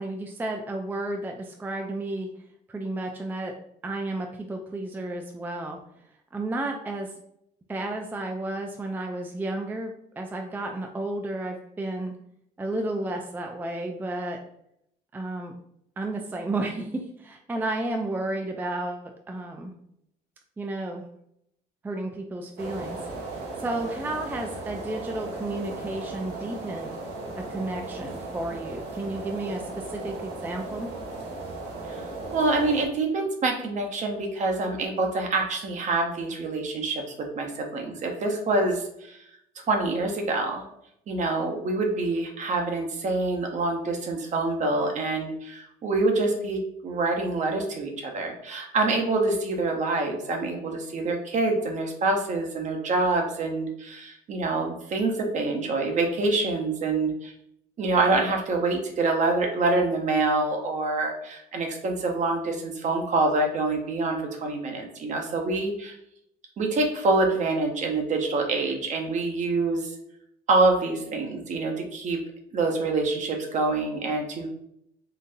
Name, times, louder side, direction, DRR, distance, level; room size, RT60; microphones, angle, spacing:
voice 1, 0.0-2.3 2.7-3.6 3.8-5.8 6.3-7.1 7.7-12.2 12.6-14.4 15.1-15.5 16.0-19.7 20.6-21.1 21.8-23.0 23.6-27.0 27.3-30.9, right 2 dB, 10° right, 3 dB, 0.3 m, -32 dB
sound 1, 22.6-32.9, right 2 dB, 80° right, 0.9 m, -36 dB
voice 2, 32.3-39.2 39.7-40.6 41.1-57.3 57.8-66.0 66.6-69.9 70.5-72.2 72.5-74.5, right 3 dB, 45° right, 2 dB, 0.8 m, -26 dB
3.8 x 2.5 x 2.6 m, 0.75 s
cardioid pair, 110°, 17 cm